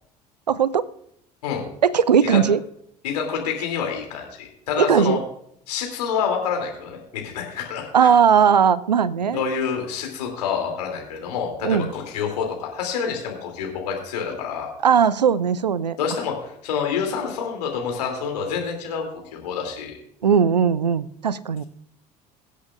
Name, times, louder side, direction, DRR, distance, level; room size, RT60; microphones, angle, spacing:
voice 1, 0.5-0.9 1.8-2.6 4.8-5.2 7.9-9.4 11.6-11.9 14.8-16.0 20.2-21.6, right 7 dB, 85° right, 20 dB, 0.4 m, -18 dB
voice 2, 3.0-5.2 5.7-8.1 9.3-14.7 16.0-19.0 19.3-20.0, left 6 dB, 70° left, 1 dB, 2.9 m, -27 dB
23.0 x 8.3 x 2.5 m, 0.76 s
figure-of-eight pair, 60°, 21 cm